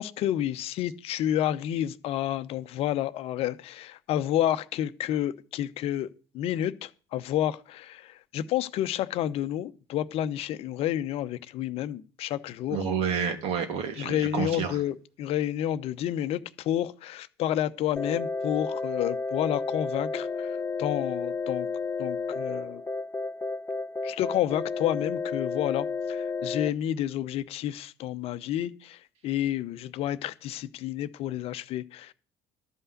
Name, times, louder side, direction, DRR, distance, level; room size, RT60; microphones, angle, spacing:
voice 1, 0.0-6.1 6.3-12.8 14.0-21.7 22.0-22.8 24.0-32.1, left 12 dB, 55° left, 0.8 m, -30 dB
voice 2, 12.7-14.8, right 6 dB, 60° right, 2.3 m, -29 dB
sound 1, 18.0-26.7, left 4 dB, 20° left, 0.7 m, -32 dB
12.5 x 5.6 x 8.0 m
hypercardioid pair, 60°, 12 cm